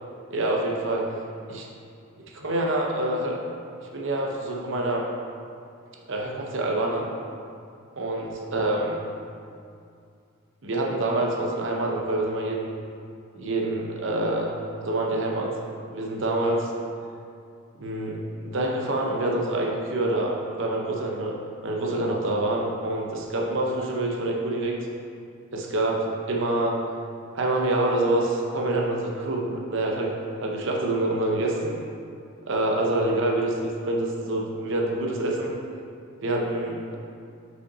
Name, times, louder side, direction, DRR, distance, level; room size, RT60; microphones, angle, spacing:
voice 1, 0.3-1.1 1.5-1.7 2.3-3.4 3.9-5.0 6.1-7.1 8.0-9.0 10.6-12.7 13.4-14.5 14.8-15.6 15.9-16.7 17.8-21.3 21.6-24.8 25.5-26.8 27.3-30.1 30.4-31.8 32.5-35.5 36.2-37.0, right 2 dB, 60° right, -1 dB, 0.7 m, -26 dB
5.6 x 5.1 x 4.0 m, 2.4 s
head